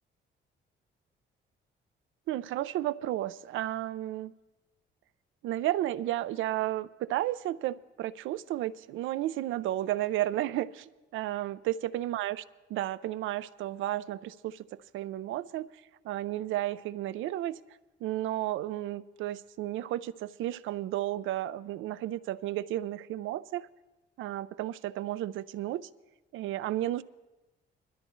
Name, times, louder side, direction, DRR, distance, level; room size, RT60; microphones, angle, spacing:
voice 1, 2.3-4.3 5.4-12.4 12.7-15.7 16.0-17.6 18.0-23.7 24.2-25.9 26.3-27.0, right 14 dB, 85° right, 0.5 m, -33 dB
21.0 x 13.0 x 3.1 m
cardioid pair, 90°, 20 cm